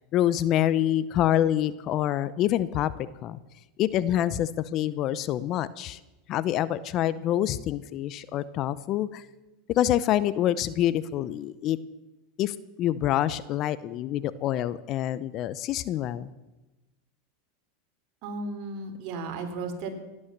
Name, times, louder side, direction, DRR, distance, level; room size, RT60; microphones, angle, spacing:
voice 1, 0.1-3.4 3.8-6.0 6.3-9.3 9.7-11.8 12.4-16.3, left 12 dB, 45° left, 17 dB, 0.7 m, -26 dB
voice 2, 18.2-19.9, right 3 dB, 55° right, 3 dB, 2.9 m, -34 dB
17.0 x 9.8 x 7.3 m, 1.0 s
supercardioid pair, 115°, 0 cm